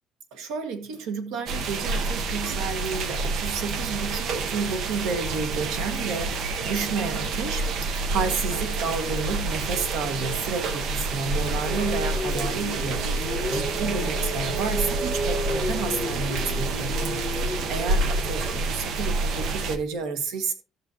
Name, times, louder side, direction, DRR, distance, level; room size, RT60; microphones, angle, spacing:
voice 1, 0.3-20.5, right 5 dB, 90° right, 1.6 m, -31 dB
sound 1, 1.5-19.8, right 3 dB, 50° right, 0.8 m, -28 dB
sound 2, 11.4-19.4, left 1 dB, 5° left, 1.4 m, -33 dB
13.5 x 7.0 x 2.8 m
cardioid pair, 175°, 0 cm